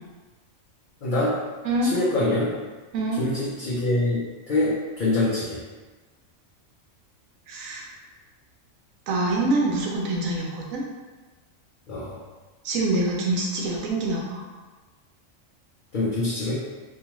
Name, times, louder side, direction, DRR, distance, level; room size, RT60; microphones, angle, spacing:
voice 1, 1.0-1.4 1.8-2.5 3.2-5.6 11.9-12.2 15.9-16.7, left 2 dB, 55° left, -8 dB, 0.6 m, -25 dB
voice 2, 2.9-3.2 7.5-7.8 9.1-10.8 12.6-14.4, right 2 dB, 85° right, -2 dB, 1.0 m, -25 dB
2.7 x 2.3 x 2.9 m, 1.3 s
omnidirectional pair, 1.4 m